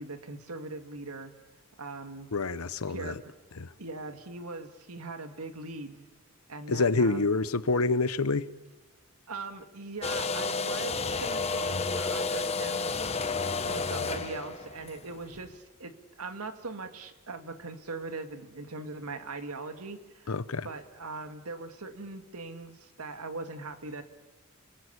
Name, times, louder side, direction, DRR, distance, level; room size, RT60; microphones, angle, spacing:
voice 1, 0.0-1.3 1.8-2.3 2.9-3.2 3.8-6.1 6.5-7.2 9.3-12.9 13.7-20.4 20.6-24.0, right 3 dB, 90° right, 2.1 m, -40 dB
voice 2, 2.3-3.1 3.6-3.7 6.7-8.5 20.3-20.7, left 3 dB, 85° left, 1.0 m, -27 dB
sound 1, 10.0-15.5, left 4 dB, 30° left, 1.1 m, -31 dB
28.5 x 20.0 x 8.4 m
head